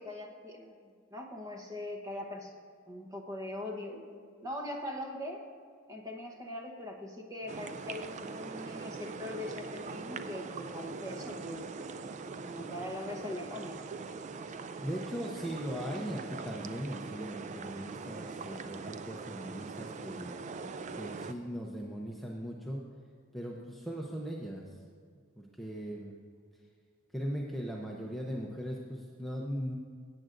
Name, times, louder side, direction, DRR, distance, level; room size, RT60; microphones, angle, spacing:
voice 1, 0.0-2.5 2.9-4.0 4.4-5.4 5.9-11.7 12.5-13.8, left 1 dB, 15° right, 1 dB, 1.0 m, -41 dB
sound 1, 7.5-21.3, right 4 dB, 35° right, 0.4 m, -42 dB
voice 2, 14.8-20.4 21.0-22.8 23.3-24.8 25.4-26.2 27.1-29.8, equal, ahead, -3 dB, 0.6 m, -39 dB
17.0 x 8.9 x 2.6 m, 2.1 s
head